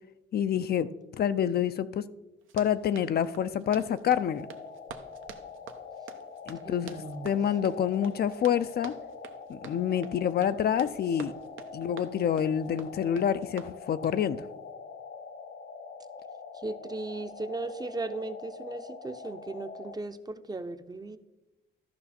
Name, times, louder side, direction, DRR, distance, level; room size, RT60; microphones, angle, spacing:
voice 1, 0.3-0.9 1.2-2.0 2.5-4.5 6.5-7.0 7.2-8.9 9.5-11.3 11.7-14.5, left 9 dB, 55° left, 12 dB, 0.5 m, -27 dB
Run, 2.4-14.2, right 8 dB, 80° right, 0.8 m, -48 dB
sound 1, 4.1-20.0, left 5 dB, 70° left, 1.3 m, -44 dB
voice 2, 6.6-7.3 16.5-21.2, right 2 dB, 20° right, 10 dB, 0.6 m, -37 dB
13.0 x 5.5 x 4.3 m, 1.0 s
cardioid pair, 90°, 20 cm